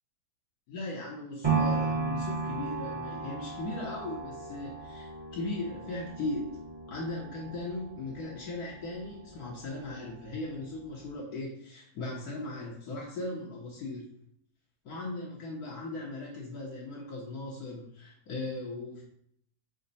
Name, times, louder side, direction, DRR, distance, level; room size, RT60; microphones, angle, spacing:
voice 1, 0.7-6.5 6.9-14.1 14.8-19.0, left 2 dB, 70° left, -4 dB, 1.2 m, -38 dB
sound 1, 1.4-9.5 10.0-10.1, right 4 dB, 25° right, 0.6 m, -35 dB
5.1 x 2.1 x 4.0 m, 0.66 s
omnidirectional pair, 1.8 m